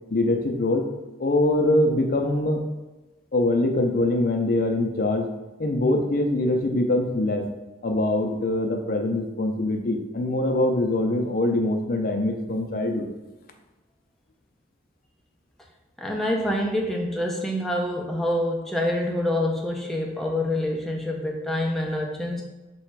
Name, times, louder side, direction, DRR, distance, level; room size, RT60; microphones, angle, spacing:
voice 1, 0.1-0.9 1.2-2.6 3.3-5.3 5.6-7.5 7.8-13.1, left 1 dB, 50° left, 4 dB, 0.5 m, -23 dB
voice 2, 16.0-22.4, left 1 dB, ahead, 0 dB, 0.5 m, -26 dB
3.2 x 3.1 x 4.6 m, 1.1 s
head